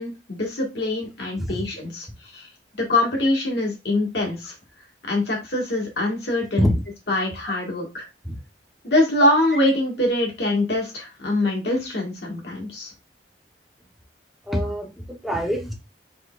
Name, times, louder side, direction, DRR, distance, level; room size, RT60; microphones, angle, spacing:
voice 1, 0.0-2.1 2.3-2.5 2.8-4.5 5.0-6.7 7.1-8.1 8.8-12.9, left 1 dB, 70° left, 0 dB, 1.8 m, -23 dB
voice 2, 14.5-15.7, equal, ahead, 0 dB, 1.0 m, -25 dB
4.9 x 4.1 x 2.4 m, 0.25 s
head